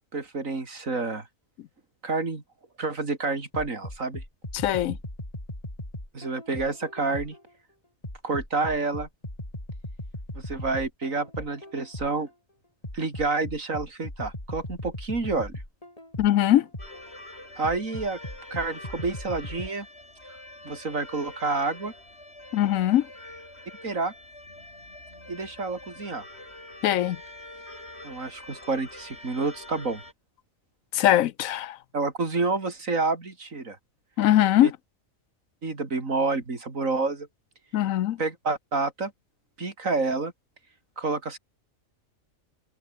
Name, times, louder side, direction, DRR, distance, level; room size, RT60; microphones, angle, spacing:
voice 1, 0.1-1.3 2.0-2.4 2.8-4.2 6.1-7.4 8.2-9.1 10.3-12.3 12.9-15.5 17.6-18.2 18.5-19.9 20.6-21.9 23.8-24.1 25.3-26.2 28.0-30.0 31.9-33.8 34.6-34.7 35.6-37.3 38.2-39.1 39.6-40.3 41.0-41.4, right 3 dB, 75° right, 3.7 m, -29 dB
sound 1, 3.5-7.5 8.0-12.3 12.8-17.1 17.6-19.7, left 1 dB, 25° left, 5.7 m, -38 dB
voice 2, 4.5-5.0 16.2-16.7 22.5-23.1 26.8-27.2 30.9-31.8 34.2-34.7 37.7-38.2, left 12 dB, 85° left, 1.1 m, -21 dB
sound 2, 16.8-30.1, left 1 dB, 50° left, 7.2 m, -45 dB
omnidirectional pair, 1.4 m